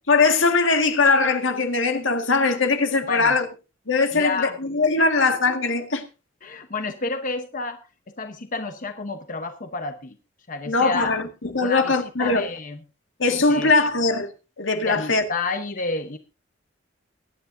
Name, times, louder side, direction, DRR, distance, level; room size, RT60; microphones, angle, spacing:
voice 1, 0.1-3.5 3.9-6.0 10.7-12.5 13.2-14.3 14.6-15.2, left 3 dB, 80° left, 1.9 m, -21 dB
voice 2, 4.1-4.5 5.0-5.1 6.4-7.8 8.2-10.1 10.5-11.1 11.6-12.8 13.5-13.7 14.9-16.2, left 3 dB, 45° left, 1.0 m, -30 dB
22.5 x 9.5 x 2.7 m
head